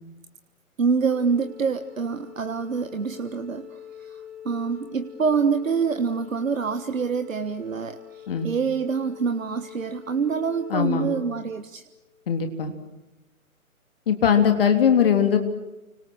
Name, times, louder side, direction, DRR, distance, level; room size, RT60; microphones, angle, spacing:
voice 1, 0.8-11.8, right 5 dB, 60° right, 9 dB, 1.6 m, -26 dB
Organ, 1.0-12.1, left 9 dB, ahead, 2.8 m, -44 dB
voice 2, 10.7-11.1 12.3-12.7 14.1-15.4, left 8 dB, 40° left, 6 dB, 3.4 m, -20 dB
30.0 x 26.0 x 6.3 m, 0.98 s
figure-of-eight pair, 140°, 44 cm